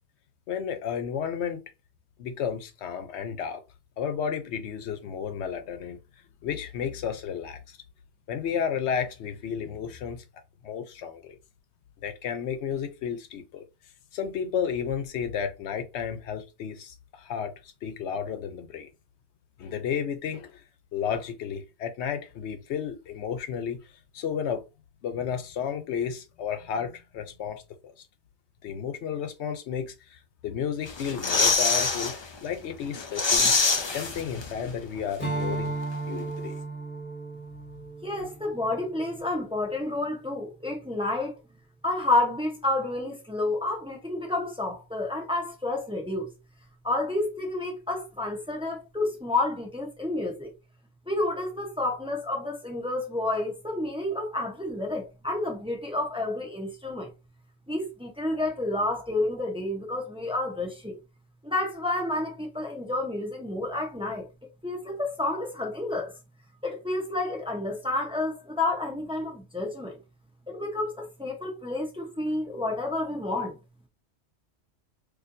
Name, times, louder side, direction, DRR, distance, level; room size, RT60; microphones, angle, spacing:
voice 1, 0.5-1.6 2.2-3.6 4.0-6.0 6.4-7.8 8.3-10.2 10.6-11.4 12.0-13.6 14.1-18.9 19.6-20.6 20.9-23.9 24.1-24.6 25.0-27.9 28.6-32.1 32.4-33.5 33.8-35.7 36.1-36.5, left 7 dB, 80° left, 0.9 m, -32 dB
sound 1, 30.9-32.2 32.5-32.6 32.9-34.7 35.0-35.1, left 4 dB, 40° left, 0.4 m, -24 dB
Strum, 35.2-39.9, right 3 dB, 20° left, 1.3 m, -35 dB
voice 2, 38.0-41.3 41.8-46.3 46.8-50.5 51.1-57.1 57.7-61.0 61.4-64.2 64.6-66.1 66.6-70.0 70.5-73.6, left 2 dB, 5° right, 0.7 m, -30 dB
4.2 x 2.5 x 2.6 m
omnidirectional pair, 1.1 m